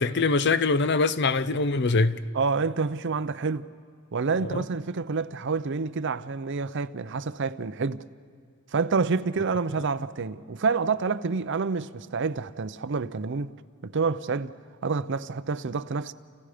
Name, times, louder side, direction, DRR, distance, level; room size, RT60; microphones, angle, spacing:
voice 1, 0.0-2.2 4.4-4.6, left 3 dB, 55° left, 0.7 m, -23 dB
voice 2, 2.3-3.7 4.1-8.0 8.7-13.5 13.8-14.6 14.8-16.1, right 4 dB, 60° right, 0.6 m, -28 dB
29.5 x 29.0 x 5.1 m
head